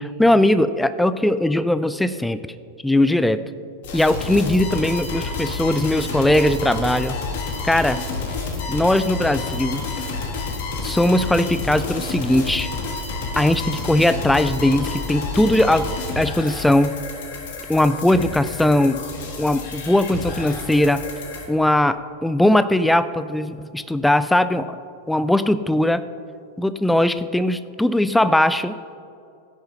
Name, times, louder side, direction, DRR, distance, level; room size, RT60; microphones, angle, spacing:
voice 1, 0.0-2.4 2.8-3.4 3.9-7.1 7.6-8.0 8.7-9.8 10.8-12.7 13.4-15.9 16.2-17.0 17.7-19.0 19.4-21.1 21.5-24.8 25.1-26.0 26.6-28.8, left 1 dB, 5° left, 13 dB, 0.4 m, -19 dB
sound 1, 3.8-21.5, left 3 dB, 55° left, 1.6 m, -29 dB
16.5 x 10.5 x 2.8 m, 2.4 s
figure-of-eight pair, 90°, 0 cm